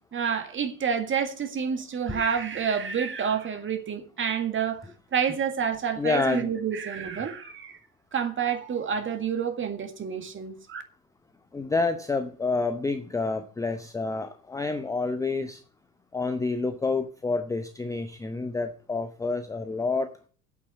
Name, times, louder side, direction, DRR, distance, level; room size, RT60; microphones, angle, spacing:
voice 1, 0.1-4.9 5.1-7.8 8.1-10.8, right 7 dB, 25° right, 1.9 m, -28 dB
voice 2, 6.0-6.5 11.5-15.6 16.1-20.1, left 3 dB, 5° left, 0.7 m, -28 dB
8.6 x 8.5 x 7.2 m
figure-of-eight pair, 75°, 48 cm